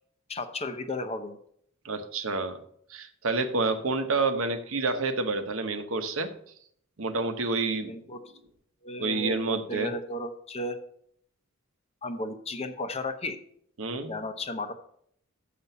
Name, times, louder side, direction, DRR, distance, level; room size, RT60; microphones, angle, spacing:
voice 1, 0.3-1.4 7.9-8.2 8.8-10.8 12.0-13.4 14.1-14.7, left 2 dB, 30° left, 9 dB, 0.7 m, -34 dB
voice 2, 1.8-2.6 2.9-6.3 7.0-7.9 9.0-9.9 13.8-14.1, right 3 dB, 75° right, 8 dB, 1.0 m, -28 dB
6.9 x 5.9 x 6.7 m, 0.67 s
head